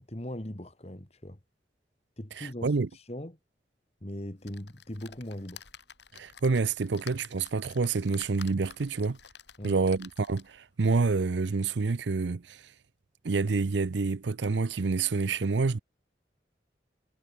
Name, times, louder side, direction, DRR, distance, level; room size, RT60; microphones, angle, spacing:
voice 1, 0.0-1.4 2.2-3.4 4.0-5.6 9.6-9.8, left 1 dB, 35° left, 2.0 m, -40 dB
voice 2, 2.4-2.9 6.1-9.2 9.6-12.6 13.2-15.8, right 4 dB, 75° right, 0.6 m, -28 dB
sound 1, 4.4-10.7 11.2-11.3 11.6-11.7, left 7 dB, 70° left, 7.4 m, -51 dB
head